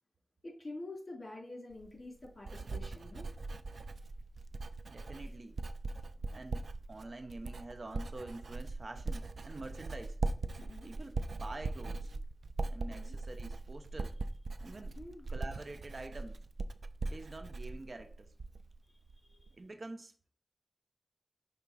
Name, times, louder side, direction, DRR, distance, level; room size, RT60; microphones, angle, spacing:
voice 1, 0.4-3.3 10.6-10.9 12.9-13.2 15.0-15.3 19.2-19.5, left 2 dB, 45° left, 3.4 m, -47 dB
Writing, 1.7-18.8 19.1-19.5, right 3 dB, 90° right, 0.4 m, -40 dB
voice 2, 4.9-5.6 6.3-10.2 10.8-12.1 12.7-14.2 14.6-15.0 15.3-16.5 17.1-18.3 19.6-20.3, right 2 dB, 60° right, 0.8 m, -47 dB
5.9 x 3.6 x 5.4 m
wide cardioid pair, 70°, 0 cm